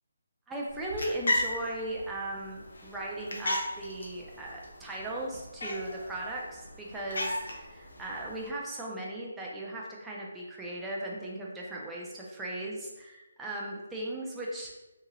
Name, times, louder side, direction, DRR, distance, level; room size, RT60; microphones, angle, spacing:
voice 1, 0.5-14.7, right 1 dB, 5° right, -4 dB, 0.3 m, -37 dB
sound 1, 0.7-8.5, left 1 dB, 70° left, 0.7 m, -36 dB
2.8 x 2.8 x 2.5 m, 1.0 s
hypercardioid pair, 170°, 0 cm